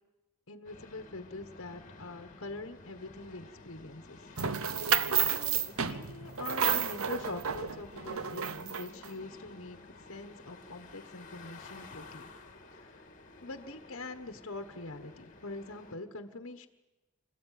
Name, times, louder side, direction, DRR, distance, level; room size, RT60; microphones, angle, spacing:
voice 1, 0.5-4.2 5.2-9.8 10.1-12.3 12.8-12.9 13.4-16.7, left 2 dB, 60° left, 6 dB, 1.4 m, -44 dB
sound 1, 0.6-16.0, left 3 dB, 35° left, 2.2 m, -52 dB
sound 2, 4.4-9.1, right 7 dB, 70° right, 0.9 m, -31 dB
27.5 x 14.5 x 9.4 m, 1.1 s
head